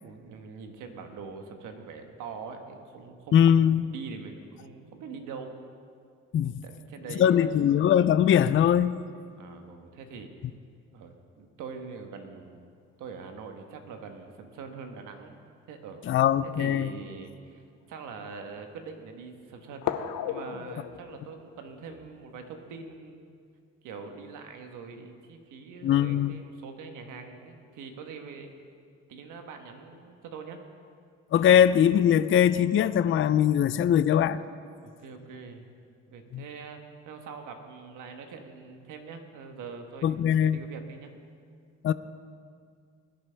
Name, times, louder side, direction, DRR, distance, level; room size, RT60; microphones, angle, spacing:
voice 1, 0.0-5.5 6.5-7.6 9.4-10.3 10.9-12.6 13.0-15.4 15.7-16.0 16.6-17.6 17.9-20.0 20.3-23.3 23.8-28.5 29.1-30.6 34.8-35.7 36.1-36.8 37.1-41.1, right 5 dB, 90° right, 5 dB, 1.3 m, -43 dB
voice 2, 3.3-3.9 6.3-6.6 7.2-9.0 16.1-16.9 25.8-26.4 31.3-34.4 36.3-36.4 40.0-40.6 41.8-41.9, left 9 dB, 45° left, 14 dB, 0.4 m, -21 dB
sound 1, 14.5-14.6 15.9-17.2 17.9-18.0 19.8-23.0, left 10 dB, 75° left, 0.8 m, -38 dB
21.0 x 10.5 x 3.4 m, 2.2 s
cardioid pair, 90°, 30 cm